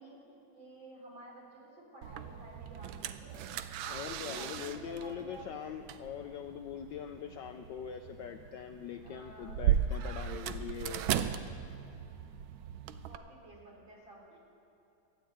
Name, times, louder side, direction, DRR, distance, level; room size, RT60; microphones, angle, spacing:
voice 1, 0.0-3.4 3.8-5.5 9.0-9.6 13.0-14.4, right 1 dB, 60° right, -3 dB, 4.1 m, -51 dB
sound 1, 2.0-13.2, right 9 dB, 75° right, 1.3 m, -37 dB
voice 2, 3.9-11.0, left 9 dB, 75° left, 6 dB, 1.0 m, -42 dB
13.0 x 9.0 x 8.5 m, 3.0 s
omnidirectional pair, 2.4 m